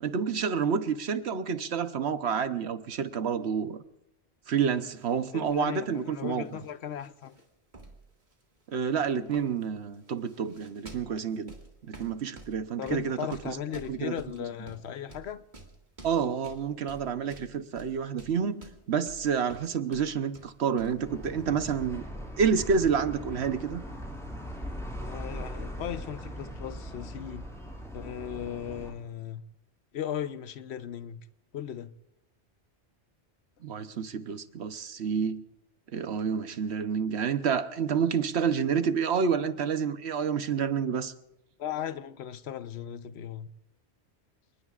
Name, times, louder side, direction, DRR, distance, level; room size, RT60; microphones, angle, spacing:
voice 1, 0.0-3.8 4.5-6.6 8.7-11.5 11.9-13.2 13.4-13.6 13.9-14.1 16.0-18.6 18.9-22.0 22.4-23.8 33.6-35.4 35.9-41.1, right 6 dB, 75° right, 1.1 m, -29 dB
sound 1, 4.8-5.2 5.5-6.7 7.0-7.5 7.7-8.6 9.1-21.9, right 2 dB, 45° right, 2.3 m, -50 dB
voice 2, 5.3-7.4 12.8-15.4 25.0-27.5 27.9-29.4 29.9-31.2 31.5-31.9 41.6-43.5, left 9 dB, 75° left, 1.0 m, -37 dB
sound 2, 21.0-28.9, equal, 5° left, 5.0 m, -40 dB
30.0 x 19.5 x 2.4 m
omnidirectional pair, 1.1 m